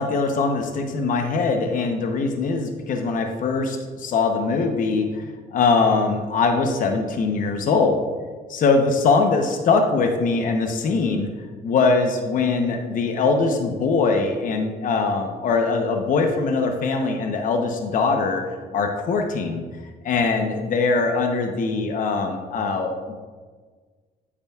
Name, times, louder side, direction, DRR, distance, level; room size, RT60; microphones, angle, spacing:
voice 1, 0.0-8.0 8.5-11.3 11.6-18.4 18.7-19.6 20.0-23.1, left 4 dB, 50° left, 4 dB, 0.8 m, -22 dB
8.9 x 8.7 x 2.4 m, 1.5 s
cardioid pair, 110°, 17 cm